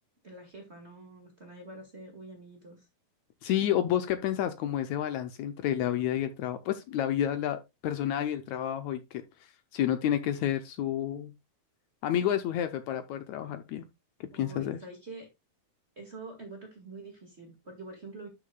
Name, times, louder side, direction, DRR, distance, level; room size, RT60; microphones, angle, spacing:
voice 1, 0.2-2.9 14.3-15.3 16.0-18.3, right 2 dB, 25° right, 1.8 m, -46 dB
voice 2, 3.4-9.2 9.7-11.3 12.0-13.8 14.3-14.8, left 11 dB, 75° left, 1.9 m, -30 dB
11.5 x 6.3 x 2.3 m
omnidirectional pair, 3.6 m